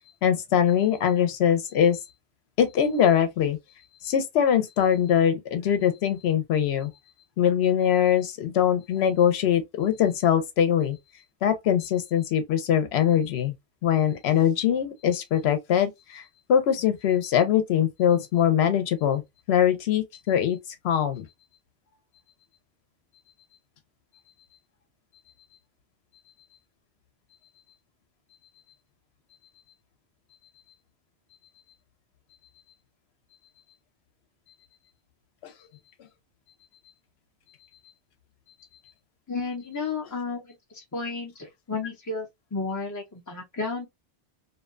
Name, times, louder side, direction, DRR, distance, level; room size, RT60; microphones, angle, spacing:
voice 1, 0.2-2.0 2.6-3.6 4.0-6.9 7.4-11.0 11.4-13.6 13.8-16.2 16.5-19.2 19.5-20.6 20.8-21.2 35.4-35.5, left 9 dB, 85° left, 0.9 m, -22 dB
voice 2, 39.3-43.9, left 4 dB, 30° left, 0.3 m, -33 dB
2.6 x 2.2 x 2.4 m
omnidirectional pair, 1.1 m